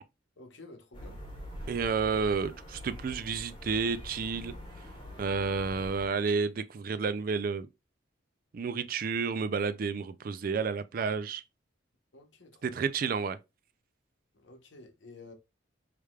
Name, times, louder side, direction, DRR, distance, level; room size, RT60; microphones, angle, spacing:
voice 1, 0.4-1.2 5.1-5.2 12.1-12.8 14.3-15.3, left 2 dB, 70° left, 1.0 m, -52 dB
sound 1, 0.9-6.1, left 1 dB, 25° left, 1.1 m, -44 dB
voice 2, 1.7-4.5 5.2-7.7 8.5-11.4 12.6-13.4, right 5 dB, 45° right, 0.3 m, -31 dB
4.8 x 3.3 x 2.3 m
head